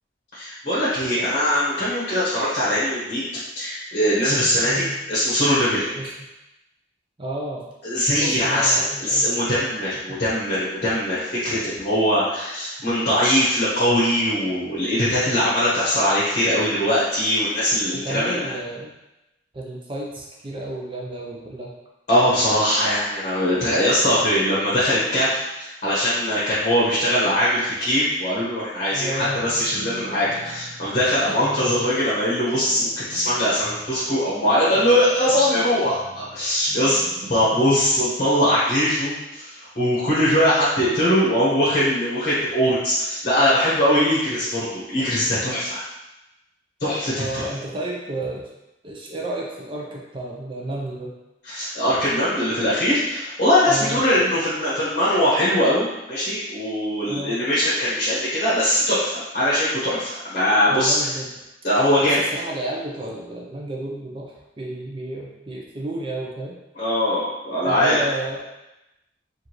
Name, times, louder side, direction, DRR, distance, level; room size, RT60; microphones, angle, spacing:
voice 1, 0.3-3.3 3.5-6.0 7.8-18.5 22.1-37.0 37.3-45.8 46.8-47.5 51.4-61.1 61.6-62.2 66.7-68.0, equal, 45° left, -9 dB, 1.2 m, -21 dB
voice 2, 4.6-5.0 5.9-6.1 7.2-7.6 8.2-9.3 18.0-18.9 19.5-21.7 28.9-29.4 31.3-31.4 47.2-48.4 48.8-51.1 53.7-54.0 57.1-57.4 60.7-61.3 62.0-66.6 67.6-68.4, right 1 dB, 30° right, -2 dB, 0.6 m, -31 dB
sound 1, 29.2-38.0, equal, 90° right, 1.2 m, -42 dB
4.8 x 2.6 x 3.0 m, 0.95 s
head